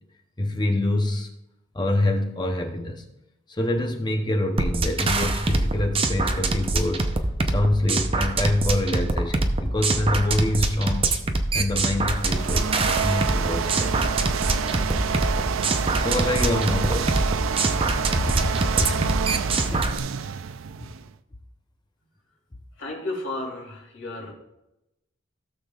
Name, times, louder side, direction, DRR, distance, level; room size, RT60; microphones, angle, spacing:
voice 1, 0.4-1.3 1.7-3.0 3.5-7.2 7.5-11.1 11.5-13.9 15.4-15.5 16.0-17.3 18.3-19.2, left 1 dB, 20° left, 4 dB, 0.8 m, -26 dB
sound 1, 4.6-20.0, right 2 dB, 30° right, 0.7 m, -24 dB
sound 2, 11.9-21.1, right 7 dB, 85° right, 0.4 m, -28 dB
voice 2, 22.8-24.3, left 2 dB, 70° left, -2 dB, 3.1 m, -33 dB
16.5 x 6.7 x 2.4 m, 0.90 s
head